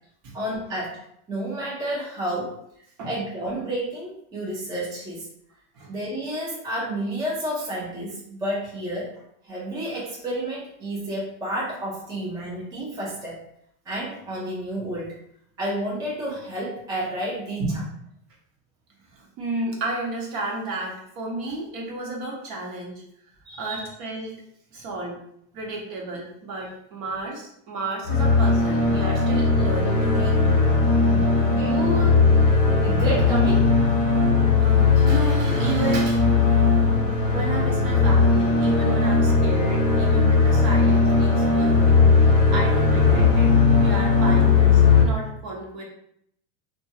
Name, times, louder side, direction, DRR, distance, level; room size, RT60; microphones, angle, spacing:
voice 1, 0.3-1.0 1.3-2.5 3.0-5.3 5.9-9.1 9.4-13.4 13.9-15.1 15.6-17.6 23.4-23.8 31.5-32.2 32.8-33.7, right 1 dB, 10° right, -5 dB, 0.4 m, -30 dB
voice 2, 19.1-23.0 23.6-24.3 24.7-25.2 25.5-30.4 30.8-31.5 34.5-36.3 37.3-45.8, right 2 dB, 50° right, -2 dB, 1.0 m, -32 dB
sound 1, 28.0-45.0, left 4 dB, 30° left, 0.8 m, -18 dB
2.6 x 2.3 x 2.7 m, 0.72 s
supercardioid pair, 125°, 44 cm